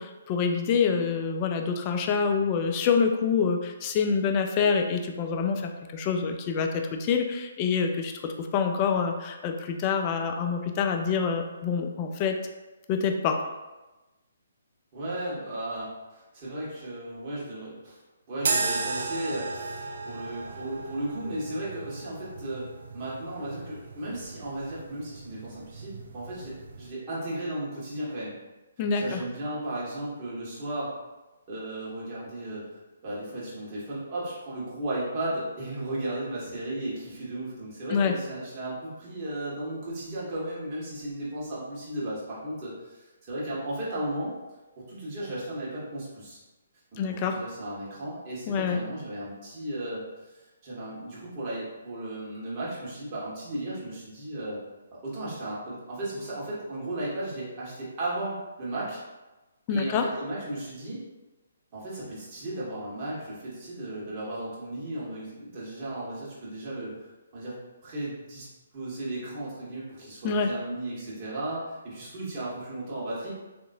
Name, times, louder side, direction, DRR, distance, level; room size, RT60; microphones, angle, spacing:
voice 1, 0.0-12.4 12.9-13.4 28.8-29.2 37.9-38.1 47.0-47.4 48.5-48.8 59.7-60.1 70.2-70.5, left 6 dB, 30° left, 4 dB, 0.4 m, -26 dB
voice 2, 14.9-18.0 18.3-22.7 22.9-28.3 28.9-30.9 31.5-32.7 33.0-44.3 44.8-46.4 46.9-54.6 55.0-59.0 59.7-61.0 61.7-67.5 67.8-68.5 68.7-73.3, right 1 dB, 35° right, -7 dB, 1.4 m, -35 dB
sound 1, 18.4-26.9, right 3 dB, 60° right, 0.4 m, -35 dB
3.6 x 2.9 x 2.6 m, 1.1 s
figure-of-eight pair, 135°, 0 cm